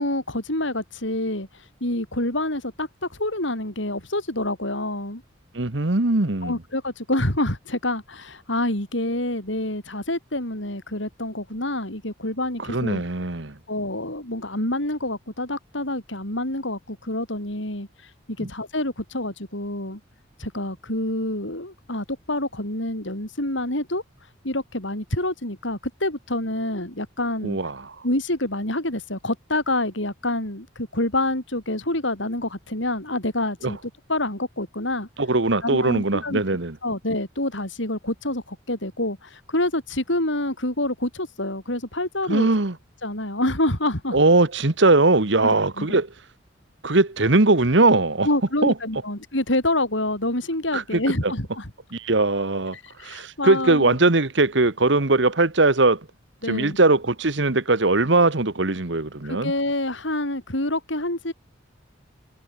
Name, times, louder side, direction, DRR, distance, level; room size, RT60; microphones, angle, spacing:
voice 1, 0.0-1.5 1.8-5.2 6.4-13.0 13.7-17.9 18.4-20.0 20.4-24.0 24.4-27.6 28.0-33.8 34.1-35.1 35.6-36.4 36.8-42.5 43.0-44.2 45.4-46.0 48.2-51.7 53.0-53.9 56.4-56.8 59.2-61.3, left 1 dB, 70° left, 7.9 m, -27 dB
voice 2, 5.5-6.6 12.6-13.5 18.4-18.5 27.4-27.9 33.6-33.7 35.2-36.8 42.3-42.7 44.1-46.1 46.8-48.3 48.6-48.7 50.7-51.3 51.9-52.8 53.0-56.1 56.5-59.5, right 2 dB, 65° right, 1.5 m, -20 dB
head